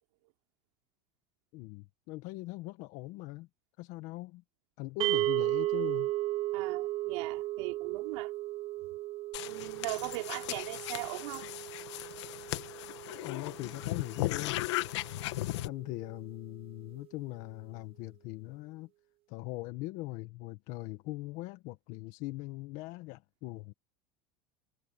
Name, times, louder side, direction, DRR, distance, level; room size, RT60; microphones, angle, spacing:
voice 1, 1.5-3.5 3.8-4.4 4.8-6.1 13.2-14.6 15.6-18.9 19.3-23.7, left 20 dB, 60° left, 1.7 m, -41 dB
sound 1, 5.0-15.3, right 17 dB, 40° right, 1.1 m, -35 dB
voice 2, 6.5-8.3 9.4-11.5, right 25 dB, 75° right, 3.8 m, -39 dB
sound 2, 9.3-15.7, left 17 dB, 80° left, 1.9 m, -37 dB
supercardioid pair, 120°, 15 cm